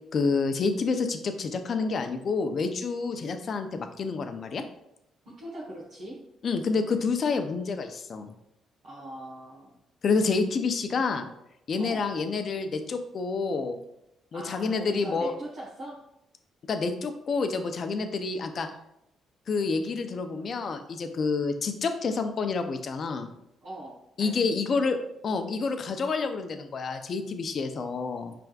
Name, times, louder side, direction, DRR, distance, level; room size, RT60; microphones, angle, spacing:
voice 1, 0.1-4.6 6.4-8.3 10.0-11.3 11.7-13.8 14.3-15.3 16.7-18.7 19.5-23.3 24.2-25.0 25.2-28.3, left 4 dB, 50° left, 7 dB, 0.5 m, -28 dB
voice 2, 5.2-6.2 8.8-9.8 11.8-12.0 14.3-16.0 23.6-24.7, right 1 dB, 70° right, -7 dB, 1.1 m, -41 dB
4.8 x 3.3 x 2.3 m, 0.82 s
cardioid pair, 90°, 0 cm